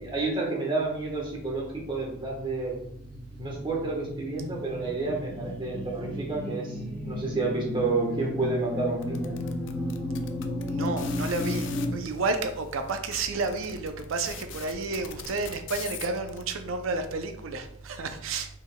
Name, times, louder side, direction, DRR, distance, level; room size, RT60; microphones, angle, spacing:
voice 1, 0.0-2.8 3.4-9.4, right 3 dB, 25° right, -2 dB, 1.1 m, -30 dB
sound 1, 2.1-11.9, left 1 dB, 5° left, 1.2 m, -34 dB
sound 2, 9.0-11.9 12.6-12.7 12.9-16.4, left 8 dB, 60° left, 0.4 m, -41 dB
voice 2, 10.7-18.5, right 3 dB, 75° right, 7 dB, 0.5 m, -31 dB
5.9 x 3.9 x 2.2 m, 0.75 s
head